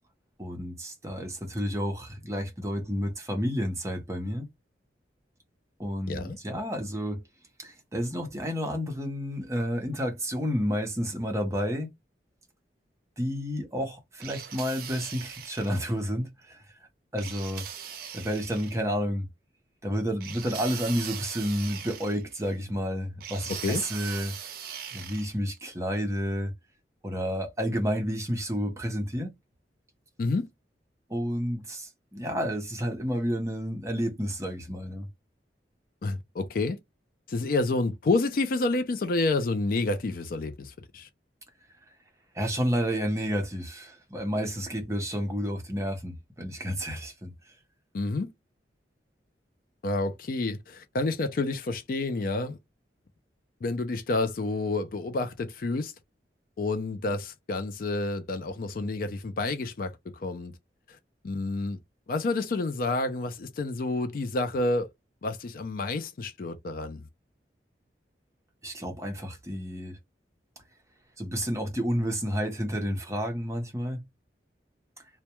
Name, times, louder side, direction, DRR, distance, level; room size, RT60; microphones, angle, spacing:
voice 1, 0.4-4.5 5.8-7.2 7.6-11.9 13.2-16.6 17.1-17.6 18.1-19.3 19.8-24.3 24.9-26.5 27.0-29.3 31.1-35.1 42.3-47.3 68.6-70.0 71.2-74.0, equal, 15° right, 0.7 m, -30 dB
sound 1, 14.2-15.9 17.2-18.8 20.2-22.5 23.2-25.3, right 8 dB, 55° right, 0.5 m, -40 dB
voice 2, 36.0-36.8 37.3-41.1 47.9-48.3 49.8-52.6 53.6-55.9 56.6-60.5 61.2-61.8 62.1-64.9 65.2-67.0, left 2 dB, 50° left, 0.4 m, -29 dB
2.2 x 2.1 x 2.9 m
head